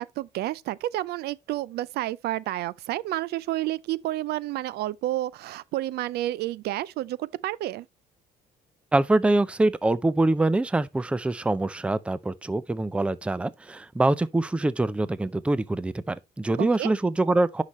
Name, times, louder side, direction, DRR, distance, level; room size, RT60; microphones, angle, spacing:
voice 1, 0.0-7.9 16.6-16.9, right 15 dB, 70° right, 0.4 m, -30 dB
voice 2, 8.9-17.6, right 2 dB, 5° right, 0.4 m, -24 dB
9.6 x 5.8 x 3.0 m
cardioid pair, 110°, 17 cm